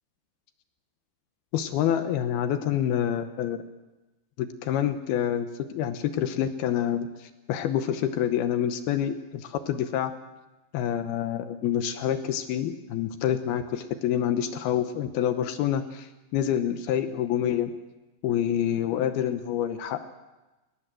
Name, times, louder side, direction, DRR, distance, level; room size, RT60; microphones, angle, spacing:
voice 1, 1.5-3.6 4.4-10.1 10.7-17.7 18.2-20.0, left 10 dB, 75° left, 9 dB, 2.4 m, -27 dB
21.0 x 18.5 x 7.8 m, 1.1 s
omnidirectional pair, 5.4 m